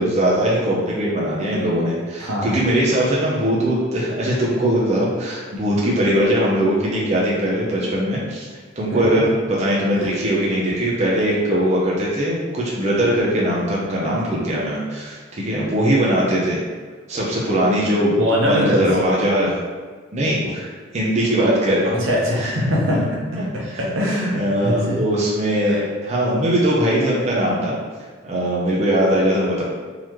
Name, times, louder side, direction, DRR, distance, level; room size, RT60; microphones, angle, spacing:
voice 1, 0.0-8.5 8.8-16.6 17.1-18.1 18.5-19.5 20.1-22.1 22.4-22.5 22.9-23.0 23.4-23.5 24.3-27.7 28.2-29.6, equal, 35° right, -5 dB, 0.6 m, -20 dB
voice 2, 2.2-2.7 8.9-9.3 9.9-10.1 18.2-18.9 22.0-23.0 23.5-25.0 25.6-25.8, equal, 80° right, -4 dB, 0.9 m, -22 dB
3.9 x 2.9 x 3.1 m, 1.5 s
head